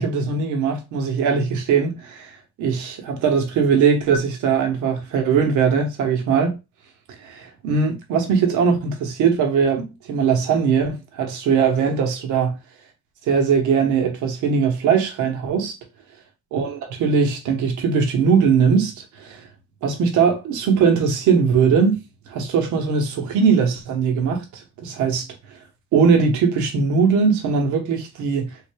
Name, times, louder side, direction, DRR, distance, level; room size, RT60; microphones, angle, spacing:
voice 1, 0.0-2.3 2.6-6.5 7.2-12.6 13.3-15.7 16.5-19.4 19.8-22.0 22.3-25.3 25.9-28.5, right 6 dB, 65° right, 1.0 m, -20 dB
3.7 x 3.3 x 2.2 m
cardioid pair, 165°, 32 cm